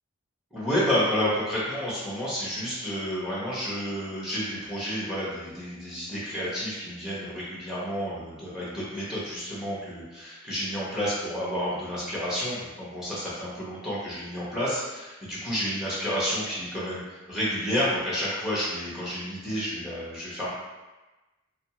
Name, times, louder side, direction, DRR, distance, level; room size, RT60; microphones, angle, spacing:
voice 1, 0.5-20.5, equal, 5° right, -8 dB, 0.9 m, -30 dB
2.5 x 2.3 x 2.8 m, 1.1 s
head